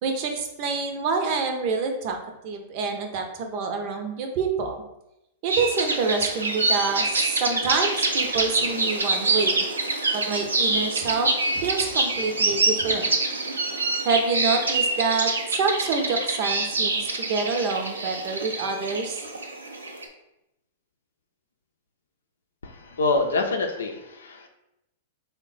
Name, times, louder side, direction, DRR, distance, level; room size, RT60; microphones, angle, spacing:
voice 1, 0.0-2.2 2.4-4.8 5.4-9.7 10.1-13.1 14.0-15.3 15.6-19.2, right 4 dB, 50° right, 4 dB, 0.6 m, -27 dB
sound 1, 5.5-20.1, right 3 dB, 90° right, 0.5 m, -26 dB
voice 2, 22.6-24.5, left 3 dB, 80° left, 4 dB, 0.5 m, -26 dB
3.5 x 2.2 x 3.9 m, 0.86 s
hypercardioid pair, 105°, 0 cm